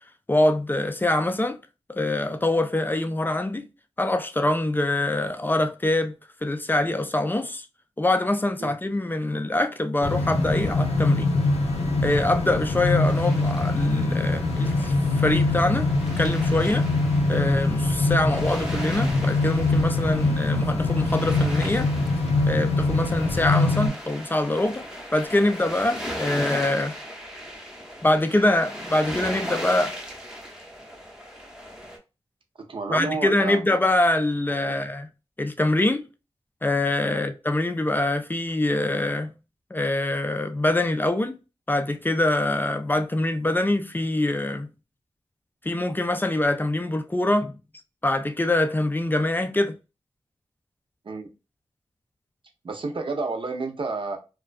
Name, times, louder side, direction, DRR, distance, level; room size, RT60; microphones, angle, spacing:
voice 1, 0.3-1.6 1.9-3.7 4.0-6.2 6.4-7.7 8.0-11.3 12.0-15.9 16.2-16.9 17.3-21.9 22.5-24.9 25.1-27.0 28.0-29.9 32.9-35.1 35.4-36.0 36.6-39.3 39.7-41.4 41.7-44.7 45.6-47.6 48.0-49.8, left 1 dB, 20° left, 0.3 m, -24 dB
sound 1, 10.0-23.9, left 2 dB, 90° left, 0.6 m, -23 dB
sound 2, 13.0-32.0, equal, 5° right, 0.7 m, -38 dB
voice 2, 32.6-33.6 34.6-34.8 37.0-37.2 51.0-51.3 52.6-54.2, right 3 dB, 55° right, 0.6 m, -31 dB
2.4 x 2.2 x 2.3 m
cardioid pair, 60°, 11 cm